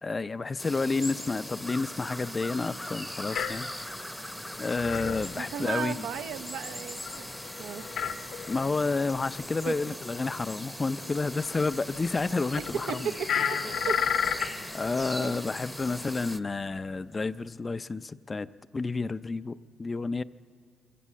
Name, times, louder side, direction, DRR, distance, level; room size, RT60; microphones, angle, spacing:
voice 1, 0.0-3.7 4.6-6.1 8.5-13.1 14.7-20.2, left 3 dB, 30° left, 15 dB, 0.5 m, -30 dB
sound 1, 0.6-16.4, equal, 5° left, 0.8 m, -40 dB
sound 2, 3.3-3.9 4.2-4.3 4.5-6.2 6.6-6.7 7.0-8.9 9.2-9.7 10.1-10.2 11.2-12.2 12.5-15.4 15.8-16.0 16.9-17.0, left 7 dB, 75° left, 1.2 m, -33 dB
voice 2, 5.4-7.3 7.6-7.8 9.7-9.8 12.9-13.0 13.8-14.0 15.2-15.4, right 8 dB, 80° right, 7 dB, 0.8 m, -35 dB
24.0 x 15.5 x 7.5 m, 2.1 s
cardioid pair, 90°, 0 cm